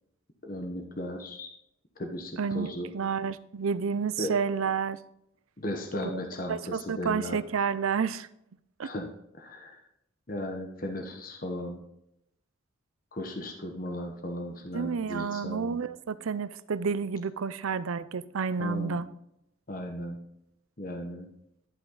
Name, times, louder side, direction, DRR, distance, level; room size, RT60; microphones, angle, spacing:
voice 1, 0.4-1.5 2.0-2.9 4.2-4.3 5.6-7.4 8.8-9.8 10.3-11.8 13.1-15.8 18.6-19.0 19.7-20.2 20.8-21.3, left 1 dB, 40° left, 1.1 m, -36 dB
voice 2, 2.4-5.0 6.0-6.1 6.5-8.3 8.8-8.9 14.7-19.1, right 6 dB, 85° right, 0.5 m, -30 dB
11.0 x 5.8 x 3.9 m
head